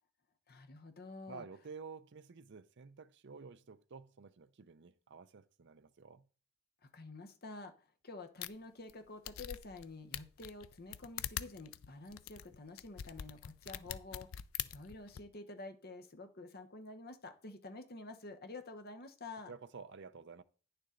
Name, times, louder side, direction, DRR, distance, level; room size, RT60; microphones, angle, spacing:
voice 1, 0.5-1.5 6.8-14.3 14.6-19.5, left 2 dB, 45° left, 1.0 m, -49 dB
voice 2, 1.3-6.3 19.5-20.4, right 5 dB, 55° right, 0.5 m, -51 dB
sound 1, 8.4-8.5 8.9-9.0 9.3-9.8 10.1-15.2, left 11 dB, 70° left, 0.4 m, -43 dB
9.8 x 6.8 x 3.8 m
head